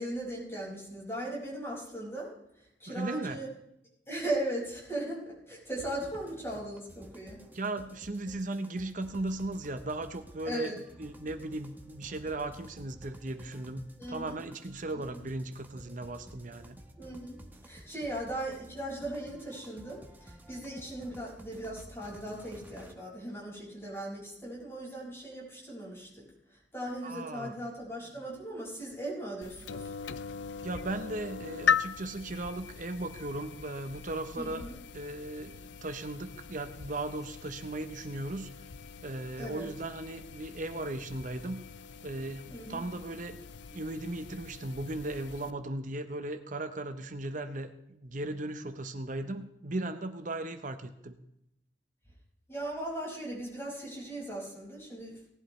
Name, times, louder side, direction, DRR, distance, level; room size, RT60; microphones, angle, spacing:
voice 1, 0.0-2.3 2.8-3.5 4.1-7.4 10.4-10.7 14.0-14.4 17.0-26.2 26.7-29.9 34.4-34.8 39.4-39.7 42.5-42.8 52.5-55.1, right 1 dB, 15° left, -4 dB, 5.8 m, -38 dB
voice 2, 2.9-3.4 7.5-10.7 11.0-16.8 27.0-27.5 30.6-34.6 34.9-38.5 39.0-41.6 42.0-43.4 43.7-51.2, right 2 dB, 45° right, 9 dB, 0.9 m, -37 dB
sound 1, 5.8-22.9, equal, 10° right, 1.2 m, -52 dB
sound 2, 29.4-45.5, left 7 dB, 75° left, 0.5 m, -39 dB
18.5 x 11.0 x 3.3 m, 0.79 s
head